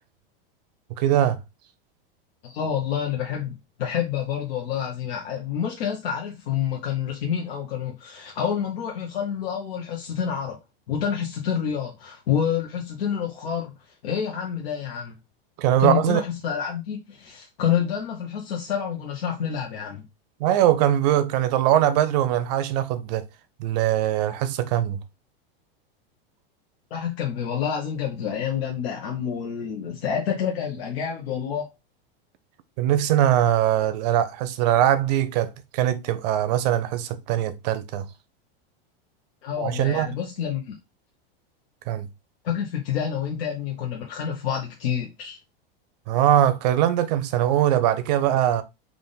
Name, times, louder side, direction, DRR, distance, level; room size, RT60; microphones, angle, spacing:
voice 1, 0.9-1.4 15.6-16.2 20.4-23.3 23.6-25.0 32.8-38.1 39.6-40.1 41.9-42.1 46.1-48.6, right 11 dB, 45° right, 0.5 m, -21 dB
voice 2, 2.4-10.6 10.9-15.2 15.8-20.1 26.9-31.7 39.4-40.8 42.4-45.4, left 8 dB, 85° left, 0.9 m, -28 dB
3.5 x 2.5 x 3.9 m
supercardioid pair, 165°, 30 cm